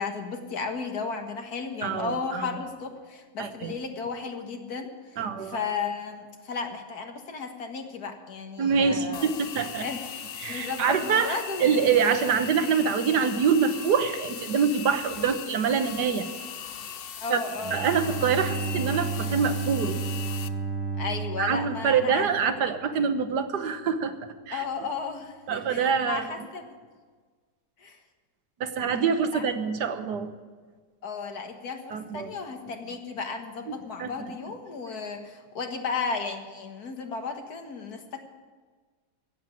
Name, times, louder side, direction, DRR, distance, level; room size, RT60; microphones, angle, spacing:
voice 1, 0.0-4.9 5.4-9.3 9.8-10.2 10.5-11.8 17.2-17.9 21.0-22.3 24.5-26.8 27.8-28.0 29.3-29.4 31.0-38.2, left 5 dB, 65° left, 5 dB, 2.0 m, -34 dB
voice 2, 1.8-2.6 3.4-3.7 5.2-5.6 8.6-9.9 10.4-16.2 17.3-17.4 17.7-20.0 21.4-24.1 24.5-24.6 25.5-26.2 28.6-30.3 31.9-32.3 33.7-34.3, right 6 dB, 75° right, 9 dB, 1.6 m, -25 dB
sound 1, 9.1-20.5, left 8 dB, 85° left, 0.5 m, -39 dB
Bowed string instrument, 17.6-22.8, right 4 dB, 15° right, 2.5 m, -32 dB
16.0 x 7.7 x 9.8 m, 1.5 s
omnidirectional pair, 1.8 m